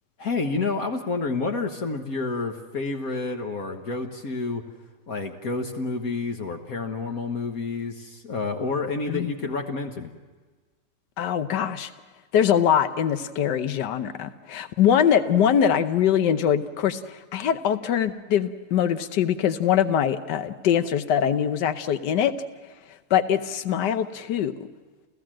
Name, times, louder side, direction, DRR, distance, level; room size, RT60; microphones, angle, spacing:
voice 1, 0.2-4.6 5.1-10.1, left 3 dB, 60° left, 3 dB, 1.7 m, -29 dB
voice 2, 11.2-11.9 12.3-22.3 23.1-24.5, left 9 dB, 85° left, 11 dB, 1.5 m, -23 dB
29.0 x 15.5 x 7.6 m, 1.4 s
omnidirectional pair, 1.8 m